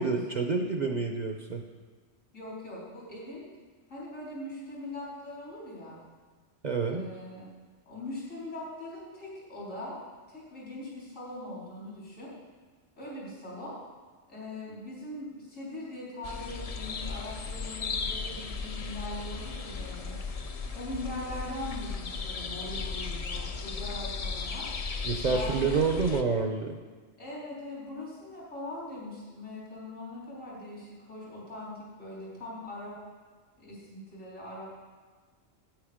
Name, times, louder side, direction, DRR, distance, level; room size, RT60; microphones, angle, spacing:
voice 1, 0.0-1.6 6.6-7.1 25.0-26.8, right 4 dB, 40° right, 3 dB, 0.7 m, -28 dB
voice 2, 2.3-3.4 3.9-6.0 6.9-7.5 7.9-10.0 10.3-12.3 13.0-13.7 14.3-20.2 20.7-24.7 25.2-26.0 27.2-33.0 33.6-34.6, left 1 dB, 90° left, -6 dB, 4.3 m, -41 dB
sound 1, 16.2-26.2, left 4 dB, 45° left, 0.5 m, -36 dB
9.4 x 9.2 x 5.0 m, 1.5 s
omnidirectional pair, 1.3 m